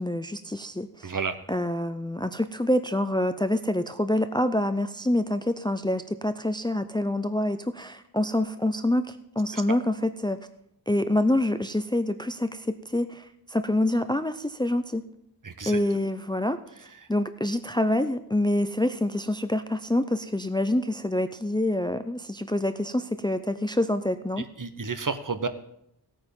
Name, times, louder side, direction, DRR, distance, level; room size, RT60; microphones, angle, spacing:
voice 1, 0.0-1.1 1.5-10.4 10.9-15.0 15.7-16.6 17.1-24.4, left 1 dB, 10° left, 10 dB, 0.5 m, -26 dB
voice 2, 1.0-1.4 9.5-9.8 15.4-15.8 17.0-17.1 24.4-25.5, right 4 dB, 50° right, 10 dB, 1.1 m, -31 dB
16.0 x 8.9 x 5.4 m, 0.75 s
wide cardioid pair, 80°, 42 cm